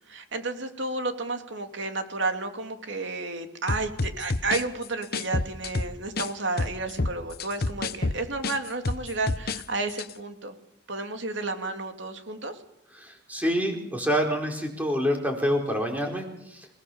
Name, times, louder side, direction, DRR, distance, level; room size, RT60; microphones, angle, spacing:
voice 1, 0.1-10.5 10.9-12.6, right 3 dB, 65° right, 6 dB, 2.9 m, -32 dB
sound 1, 3.7-6.3 6.6-9.6 9.9-10.1, left 3 dB, 50° left, 0.9 m, -29 dB
voice 2, 12.9-16.7, equal, 10° right, 1 dB, 4.6 m, -27 dB
27.0 x 19.5 x 7.2 m, 0.81 s
head